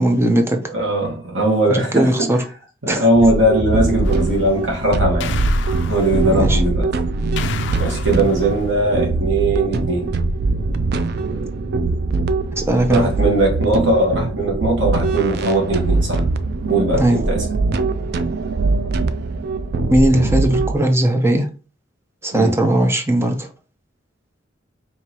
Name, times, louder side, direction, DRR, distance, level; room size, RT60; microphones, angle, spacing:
voice 1, 0.0-0.6 1.7-2.4 2.9-3.1 6.3-6.6 12.5-13.1 17.0-17.2 19.9-21.5 22.2-23.5, right 1 dB, 15° right, 0.6 m, -18 dB
voice 2, 0.7-2.1 2.8-5.3 5.8-6.9 7.8-10.1 12.9-16.2 16.6-17.4 22.3-22.5, right 1 dB, 75° right, 1.5 m, -19 dB
sound 1, 3.2-20.8, right 3 dB, 55° right, 0.4 m, -22 dB
sound 2, 4.0-4.7 5.2-6.6 7.4-8.8, left 5 dB, 65° left, 0.4 m, -31 dB
4.6 x 2.8 x 2.9 m
head